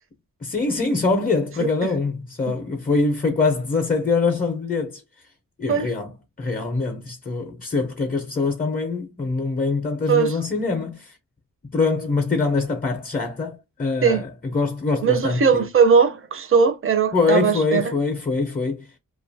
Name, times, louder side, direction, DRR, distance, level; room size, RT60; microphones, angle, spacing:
voice 1, 0.4-5.0 5.6-6.1 6.4-11.2 11.7-15.6 17.1-18.9, left 4 dB, 25° left, 0.5 m, -24 dB
voice 2, 15.0-17.8, right 6 dB, 40° right, 0.5 m, -19 dB
2.6 x 2.2 x 2.6 m
wide cardioid pair, 130°, 35 cm